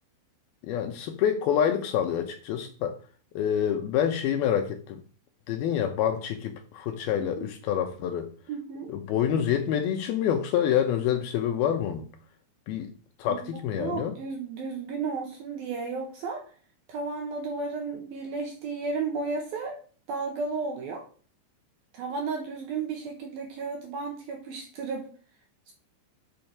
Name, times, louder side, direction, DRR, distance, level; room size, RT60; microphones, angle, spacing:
voice 1, 0.6-3.0 3.4-5.0 5.5-8.3 8.9-12.1 12.7-12.9 13.2-14.1, left 9 dB, 80° left, 2.2 m, -27 dB
voice 2, 7.2-7.5 8.5-8.9 13.3-16.4 16.9-19.8 20.1-21.0 21.9-25.1 25.7-25.8, right 4 dB, 65° right, 2.6 m, -33 dB
7.1 x 6.3 x 5.9 m
omnidirectional pair, 5.4 m